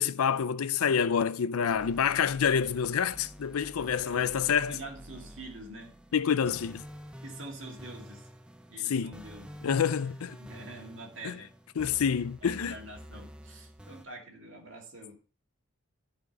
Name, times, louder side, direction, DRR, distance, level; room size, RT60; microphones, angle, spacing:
voice 1, 0.0-4.8 6.1-6.8 8.9-9.1 9.6-10.4 11.2-11.4 11.8-12.7, left 7 dB, 85° left, 0.5 m, -27 dB
sound 1, 1.7-14.1, equal, 5° right, 0.5 m, -49 dB
voice 2, 4.0-4.4 4.7-5.9 7.2-8.3 8.7-9.7 10.4-11.5 12.4-15.2, right 2 dB, 60° right, 2.4 m, -46 dB
12.0 x 5.2 x 4.0 m
head